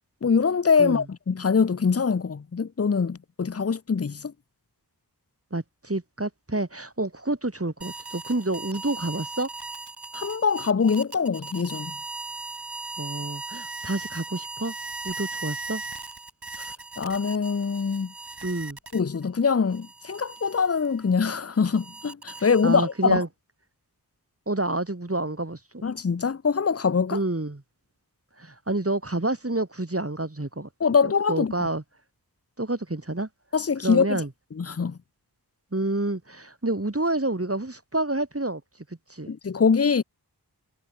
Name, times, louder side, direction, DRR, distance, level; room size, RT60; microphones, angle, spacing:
voice 1, 0.2-4.3 10.1-11.9 17.0-18.1 18.9-23.2 25.8-27.2 30.8-31.7 33.5-34.2 34.6-35.0 39.3-40.0, left 5 dB, 40° left, 0.7 m, -23 dB
voice 2, 5.5-9.5 13.0-14.7 15.0-15.8 18.4-18.8 22.4-23.3 24.5-25.8 27.1-27.6 28.4-30.7 31.3-31.8 32.6-33.3 33.8-34.3 35.7-38.6 39.1-39.3, right 2 dB, 35° right, 5.1 m, -28 dB
sound 1, 7.8-19.3 19.7-23.1, right 3 dB, 75° right, 7.8 m, -38 dB
wide cardioid pair, 40°, 39 cm